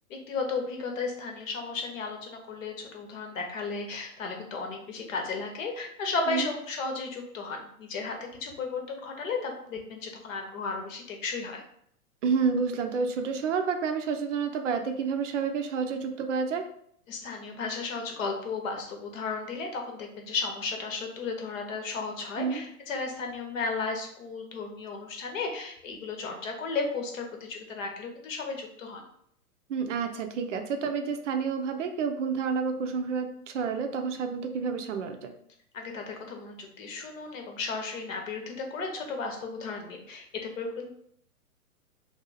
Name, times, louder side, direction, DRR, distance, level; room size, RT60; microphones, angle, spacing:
voice 1, 0.1-11.6 17.1-29.0 35.7-40.9, left 4 dB, 60° left, 3 dB, 0.9 m, -34 dB
voice 2, 12.2-16.7 22.4-22.6 29.7-35.3, right 5 dB, 55° right, 6 dB, 0.5 m, -29 dB
2.6 x 2.3 x 3.9 m, 0.68 s
hypercardioid pair, 130°, 45 cm